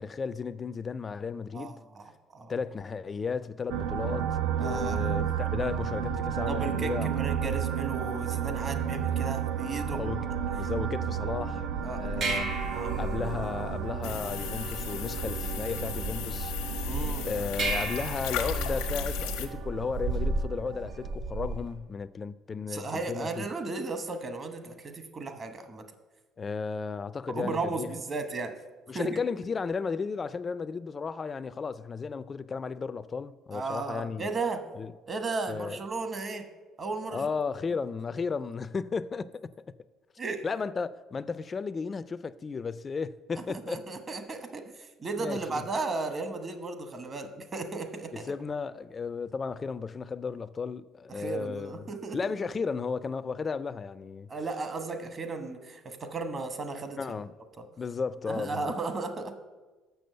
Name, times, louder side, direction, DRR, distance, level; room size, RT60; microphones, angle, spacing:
voice 1, 0.0-1.8 2.5-7.1 9.9-10.3 10.6-11.7 12.0-12.5 13.0-16.5 17.2-23.4 26.4-27.9 28.9-34.3 34.7-34.9 35.5-35.8 37.1-39.3 40.4-44.0 45.2-45.6 48.3-51.8 52.1-54.3 57.0-57.3 57.8-58.7, left 5 dB, 35° left, 0.3 m, -34 dB
voice 2, 1.5-2.5 4.6-5.3 6.5-10.0 11.8-12.3 12.7-13.0 16.9-17.3 22.7-25.8 27.3-28.5 28.9-29.2 33.5-34.6 35.1-36.5 36.8-37.3 40.2-40.4 43.5-48.3 51.1-52.2 54.3-57.0 57.6-57.7 58.3-59.4, right 3 dB, 40° right, 1.0 m, -35 dB
sound 1, 3.7-21.1, right 8 dB, 85° right, 0.5 m, -33 dB
sound 2, 11.7-21.7, right 3 dB, 55° right, 2.7 m, -35 dB
sound 3, 14.0-19.5, left 8 dB, 90° left, 0.8 m, -36 dB
6.9 x 6.1 x 6.6 m
supercardioid pair, 85°, 0 cm